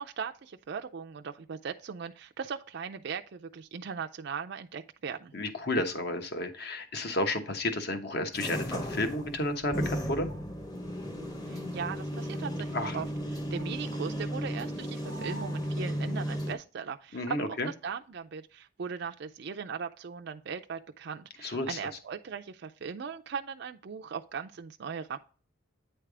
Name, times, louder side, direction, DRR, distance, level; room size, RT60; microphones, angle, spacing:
voice 1, 0.0-5.3 11.4-25.2, right 6 dB, 55° right, 0.4 m, -39 dB
voice 2, 5.3-10.3 12.7-13.0 17.1-17.7 21.4-21.8, left 1 dB, 50° left, 1.1 m, -31 dB
sound 1, 8.3-16.6, equal, 20° left, 0.9 m, -35 dB
9.1 x 3.4 x 4.8 m
head